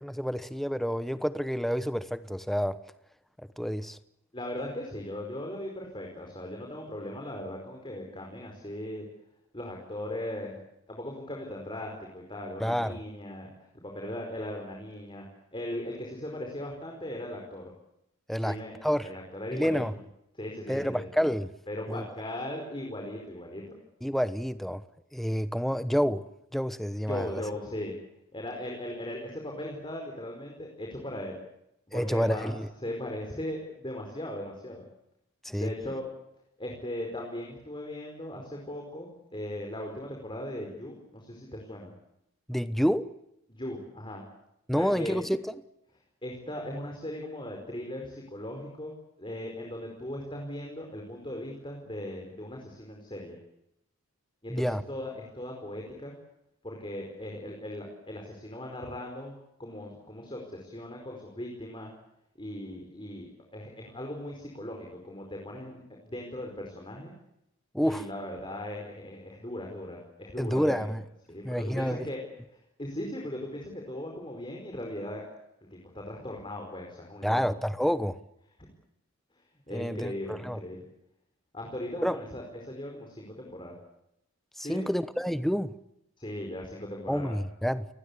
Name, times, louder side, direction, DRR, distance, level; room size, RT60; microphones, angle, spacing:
voice 1, 0.0-2.8 3.6-4.0 12.6-13.0 18.3-18.6 18.8-19.1 19.5-19.9 20.7-21.5 21.9-22.0 24.0-24.8 25.1-26.2 26.5-27.4 31.9-32.7 35.4-35.7 42.5-43.1 44.7-45.5 54.5-54.8 67.7-68.1 70.4-71.0 71.4-72.1 77.2-78.2 79.7-80.6 82.0-82.2 84.6-85.7 87.1-87.9, equal, ahead, 0.9 m, -28 dB
voice 2, 4.3-9.1 9.5-10.6 10.9-13.5 13.7-15.2 15.5-17.7 18.4-18.7 19.0-19.8 20.3-21.1 21.7-23.6 27.1-27.9 28.3-31.4 31.9-32.5 32.8-34.8 35.6-36.0 36.6-41.9 43.5-44.2 44.7-45.2 46.2-53.4 54.4-56.1 56.6-59.3 59.6-61.9 62.4-67.1 67.8-70.9 71.3-72.2 72.8-75.2 75.7-77.6 79.4-80.8 81.5-83.8 84.6-84.9 86.2-87.4, left 1 dB, 20° left, 4.9 m, -38 dB
29.5 x 20.0 x 8.4 m
head